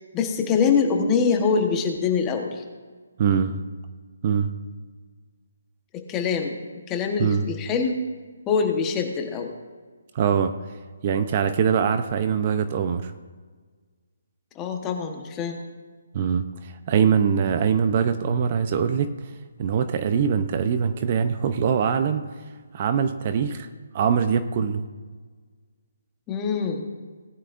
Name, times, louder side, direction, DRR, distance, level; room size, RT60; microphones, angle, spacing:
voice 1, 0.0-2.6 5.9-6.5 6.9-8.0 8.5-9.5 14.5-15.6 26.3-26.8, left 5 dB, 15° left, 3 dB, 1.2 m, -24 dB
voice 2, 3.2-3.6 4.2-4.5 7.2-7.4 10.1-10.5 11.0-13.1 16.1-19.1 19.6-22.2 22.7-23.7 23.9-24.8, right 7 dB, 30° right, 9 dB, 0.7 m, -23 dB
19.0 x 10.5 x 2.6 m, 1.5 s
hypercardioid pair, 165°, 0 cm